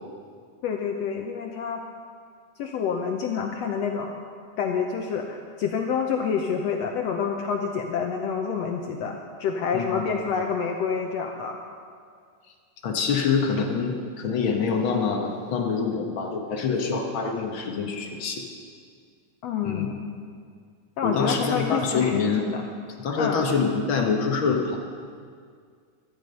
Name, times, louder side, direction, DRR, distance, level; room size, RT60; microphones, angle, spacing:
voice 1, 0.6-1.8 2.6-4.2 4.6-11.6 19.4-20.1 21.0-22.6 23.2-23.4, left 6 dB, 70° left, 3 dB, 1.6 m, -28 dB
voice 2, 9.7-10.1 12.8-18.4 19.6-19.9 21.0-22.4 23.0-24.8, left 5 dB, 55° left, 2 dB, 1.6 m, -25 dB
16.0 x 13.0 x 5.4 m, 2.1 s
omnidirectional pair, 3.7 m